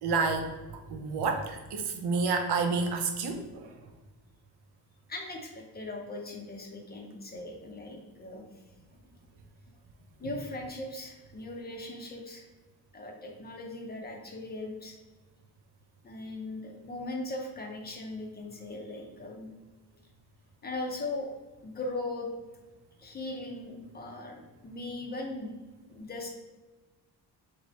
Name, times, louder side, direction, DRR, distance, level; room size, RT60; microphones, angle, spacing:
voice 1, 0.0-3.7, right 4 dB, 85° right, 5 dB, 0.7 m, -30 dB
voice 2, 5.1-8.4 10.2-12.4 12.9-15.0 16.0-19.5 20.6-21.3 21.6-22.3 23.0-25.5 25.9-26.3, left 2 dB, 25° left, 0 dB, 0.5 m, -39 dB
3.1 x 2.7 x 4.2 m, 1.2 s
wide cardioid pair, 175°, 38 cm